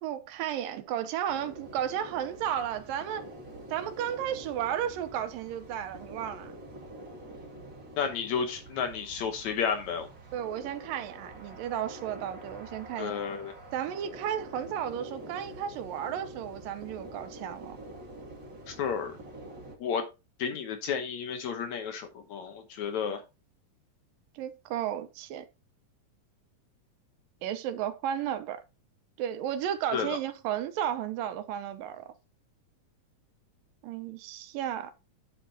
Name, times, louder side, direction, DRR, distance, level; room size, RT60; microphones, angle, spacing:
voice 1, 0.0-3.3 3.7-6.5 10.3-13.1 13.7-17.8 24.4-25.5 27.4-28.6 29.2-32.1 33.8-34.9, right 10 dB, 80° right, 2.6 m, -33 dB
sound 1, 1.3-19.8, right 1 dB, 35° right, 2.6 m, -46 dB
voice 2, 8.0-10.1 13.0-13.5 18.7-19.1 19.8-20.1 20.4-23.2 29.9-30.2, left 6 dB, 65° left, 2.1 m, -32 dB
10.0 x 7.2 x 2.8 m
omnidirectional pair, 4.0 m